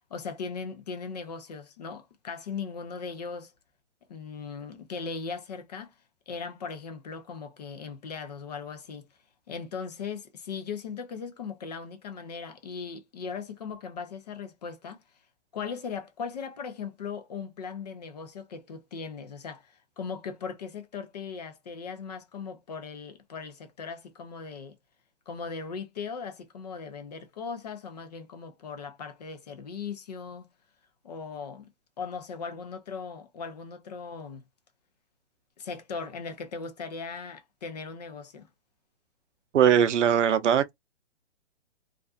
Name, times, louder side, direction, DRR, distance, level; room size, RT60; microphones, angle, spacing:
voice 1, 0.1-3.5 4.1-5.9 6.3-9.1 9.5-15.0 15.5-24.8 25.3-30.5 31.0-31.7 32.0-34.4 35.6-38.5, left 5 dB, 35° left, 0.5 m, -38 dB
voice 2, 39.5-40.7, right 9 dB, 85° right, 0.6 m, -21 dB
2.4 x 2.4 x 2.3 m
hypercardioid pair, 155°, 35 cm